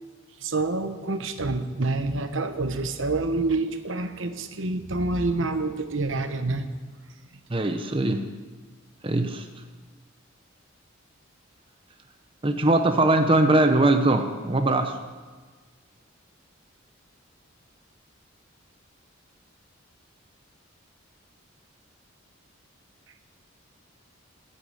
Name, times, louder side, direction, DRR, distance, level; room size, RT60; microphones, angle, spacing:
voice 1, 0.4-6.6, right 2 dB, 65° right, 9 dB, 1.0 m, -27 dB
voice 2, 7.5-8.3 9.0-9.5 12.4-15.0, right 2 dB, 25° right, 6 dB, 0.7 m, -21 dB
11.5 x 9.7 x 8.5 m, 1.4 s
head